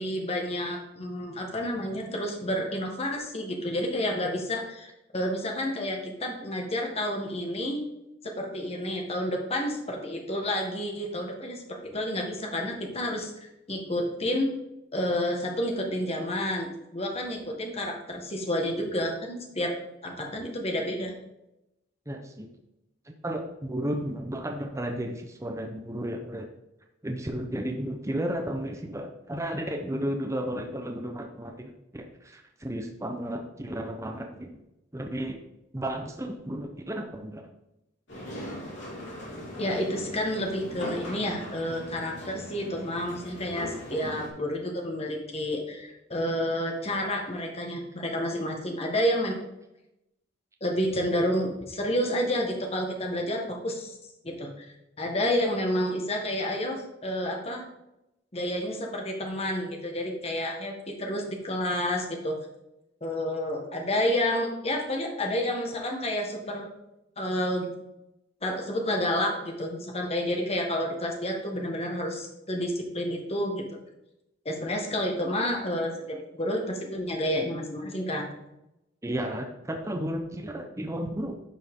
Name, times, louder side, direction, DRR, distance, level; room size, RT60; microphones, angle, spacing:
voice 1, 0.0-7.8 8.2-14.5 14.9-19.7 20.0-21.1 39.6-49.3 50.6-54.0 54.2-54.6 55.0-57.6 58.3-62.4 63.0-66.7 67.2-67.7 68.4-73.7 74.4-78.3, left 1 dB, 35° left, 2 dB, 1.6 m, -30 dB
voice 2, 22.1-22.5 23.1-26.5 27.0-34.5 34.9-35.4 35.7-37.4 44.0-44.1 79.0-81.4, right 1 dB, 15° right, 3 dB, 0.8 m, -33 dB
sound 1, 38.1-44.3, equal, 70° left, 3.5 m, -40 dB
11.0 x 6.0 x 3.7 m, 0.89 s
head